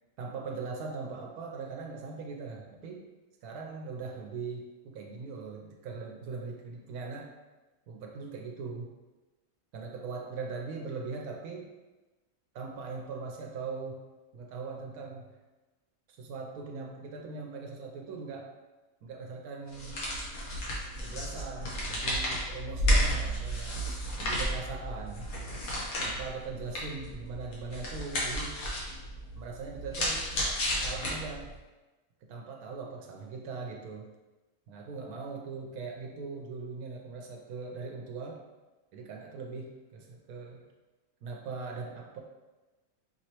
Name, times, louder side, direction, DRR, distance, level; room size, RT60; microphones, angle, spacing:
voice 1, 0.2-3.0 3.4-7.3 7.9-8.9 9.7-11.7 12.5-14.0 14.3-15.2 16.1-18.5 19.0-20.1 21.0-23.8 24.2-25.3 26.0-28.6 29.3-30.2 30.8-31.5 32.3-34.1 34.7-38.4 38.9-40.6 41.2-42.2, right 4 dB, 90° right, 0 dB, 1.1 m, -40 dB
sound 1, 19.7-31.6, equal, 75° left, 1.5 m, -32 dB
5.5 x 3.1 x 2.9 m, 1.1 s
omnidirectional pair, 1.5 m